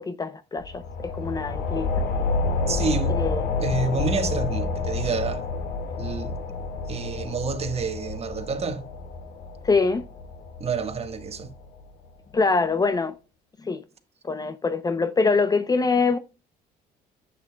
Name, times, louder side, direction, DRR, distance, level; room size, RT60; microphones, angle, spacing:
voice 1, 0.0-2.0 3.2-3.4 9.6-10.0 12.3-13.1 13.6-13.8 14.2-16.2, left 4 dB, 20° left, 0.6 m, -24 dB
sound 1, 0.6-11.8, left 3 dB, 70° left, 1.9 m, -29 dB
voice 2, 2.7-3.2 3.6-5.4 6.0-6.4 6.9-8.8 10.6-11.5, right 5 dB, 35° right, 1.5 m, -28 dB
11.0 x 8.6 x 2.2 m
cardioid pair, 110°, 17 cm